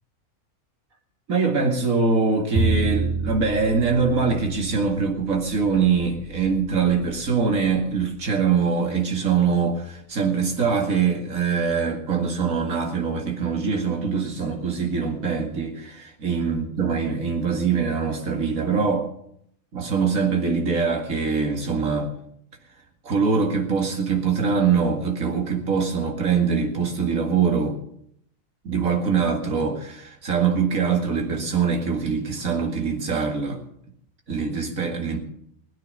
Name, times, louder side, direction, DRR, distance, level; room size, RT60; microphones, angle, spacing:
voice 1, 1.3-19.1 19.7-22.1 23.0-27.8 28.6-33.6 34.3-35.2, right 5 dB, 90° right, 2 dB, 2.5 m, -23 dB
Bowed string instrument, 2.5-8.7, right 3 dB, 25° right, 1.8 m, -30 dB
20.5 x 9.0 x 6.5 m, 0.73 s
omnidirectional pair, 1.4 m